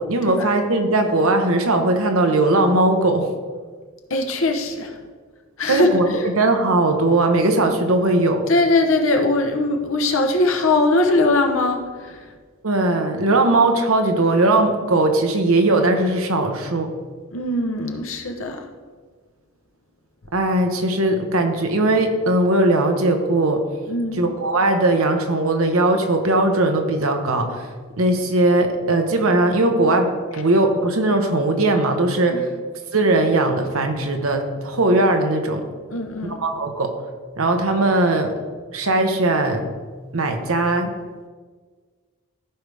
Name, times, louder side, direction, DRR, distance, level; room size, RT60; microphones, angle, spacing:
voice 1, 0.0-3.3 5.7-6.1 6.4-8.4 12.6-16.9 20.3-23.6 24.2-32.4 32.9-35.6 36.2-36.9 37.4-38.3 38.7-39.7 40.1-40.9, right 2 dB, 70° right, 5 dB, 1.0 m, -19 dB
voice 2, 4.1-5.1 5.6-6.2 8.5-12.3 17.3-18.7 23.9-24.3 32.2-32.6 35.9-36.4, left 2 dB, 60° left, 4 dB, 1.0 m, -21 dB
14.5 x 4.9 x 3.4 m, 1.5 s
head